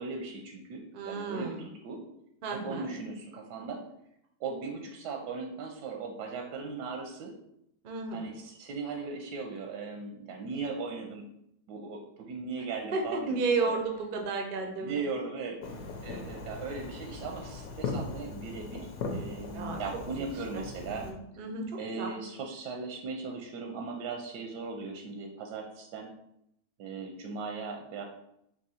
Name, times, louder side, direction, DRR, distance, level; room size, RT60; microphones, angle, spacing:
voice 1, 0.0-2.0 2.5-3.8 4.4-7.3 8.1-11.2 11.7-13.8 14.8-15.6 16.0-21.1 21.8-26.1 26.8-28.0, right 4 dB, 85° right, 2 dB, 1.2 m, -38 dB
voice 2, 0.9-1.6 2.4-2.9 7.8-8.3 12.9-15.0 19.5-19.8 20.5-20.6 21.0-22.1, right 3 dB, 70° right, 3 dB, 0.5 m, -32 dB
Fireworks, 15.6-21.1, left 3 dB, 65° left, 1.1 m, -39 dB
3.6 x 2.9 x 4.1 m, 0.76 s
omnidirectional pair, 1.8 m